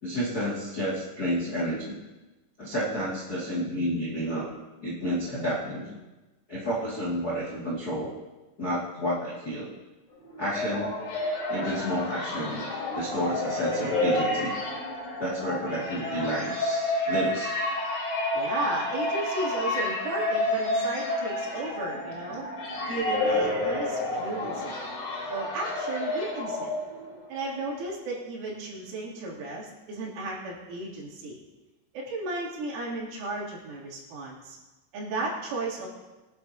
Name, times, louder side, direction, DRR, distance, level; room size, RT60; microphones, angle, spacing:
voice 1, 0.0-2.0 2.6-4.5 4.8-6.0 6.5-8.1 8.6-9.7 10.4-10.9 11.5-14.5 15.2-17.5, equal, 35° left, -6 dB, 1.7 m, -30 dB
sound 1, 10.2-27.2, left 2 dB, 60° left, 5.7 m, -30 dB
voice 2, 18.3-22.5 22.9-24.8 25.3-26.7 27.3-31.4 31.9-34.6 34.9-35.9, right 2 dB, 90° right, -5 dB, 5.7 m, -34 dB
23.0 x 11.0 x 2.9 m, 1.1 s
omnidirectional pair, 5.5 m